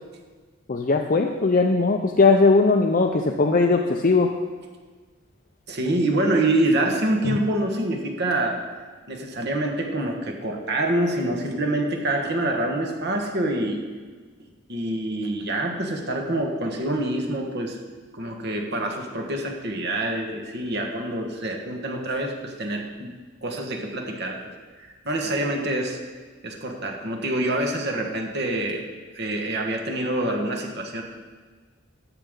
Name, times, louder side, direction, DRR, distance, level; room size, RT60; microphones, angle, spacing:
voice 1, 0.7-4.3 7.2-7.4, left 3 dB, 40° left, 3 dB, 0.5 m, -19 dB
voice 2, 5.7-8.6 9.1-13.8 14.7-17.8 18.1-23.1 23.4-24.5 24.8-26.0 26.4-28.8 29.1-31.0, right 1 dB, 50° right, 2 dB, 1.4 m, -26 dB
13.0 x 8.0 x 3.7 m, 1.4 s
head